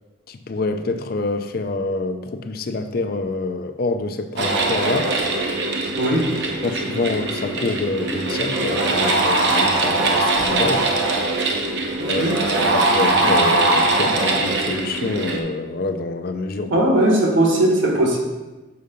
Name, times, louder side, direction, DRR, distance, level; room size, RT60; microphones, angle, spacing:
voice 1, 0.3-5.1 6.6-10.9 12.1-12.3 12.7-16.8, left 3 dB, 50° left, 8 dB, 0.5 m, -26 dB
sound 1, 4.4-15.4, right 2 dB, 60° right, 0.8 m, -21 dB
voice 2, 6.0-6.3 12.1-12.4 16.7-18.2, right 1 dB, 90° right, -1 dB, 1.5 m, -18 dB
6.9 x 3.8 x 5.1 m, 1.1 s
head